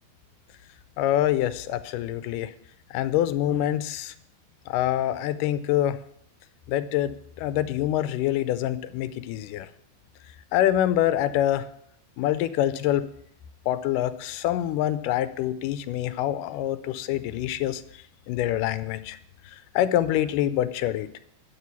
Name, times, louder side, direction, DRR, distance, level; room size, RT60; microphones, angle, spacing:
voice 1, 1.0-2.5 2.9-4.1 4.7-6.0 6.7-9.7 10.5-11.7 12.2-13.1 13.7-17.8 18.3-19.2 19.5-21.2, left 12 dB, 85° left, 13 dB, 2.2 m, -25 dB
11.5 x 4.4 x 8.2 m, 0.70 s
omnidirectional pair, 3.7 m